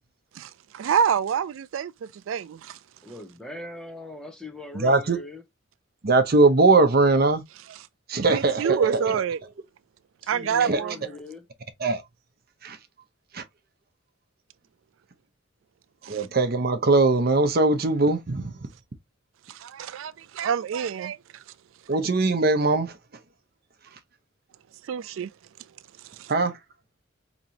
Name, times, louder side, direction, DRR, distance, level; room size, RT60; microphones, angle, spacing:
voice 1, 0.8-1.9 2.3-2.6 8.2-9.4 10.3-11.1 19.6-21.2 24.9-25.3, right 7 dB, 85° right, 0.3 m, -26 dB
voice 2, 3.0-5.4 10.2-11.4, left 2 dB, 5° left, 1.0 m, -40 dB
voice 3, 4.7-5.2 6.0-7.4 8.1-9.1 10.7-10.8 11.8-12.0 12.6-12.8 13.3-13.4 16.1-18.5 21.9-22.9 26.3-26.5, right 3 dB, 50° right, 0.8 m, -21 dB
5.0 x 3.0 x 2.7 m
head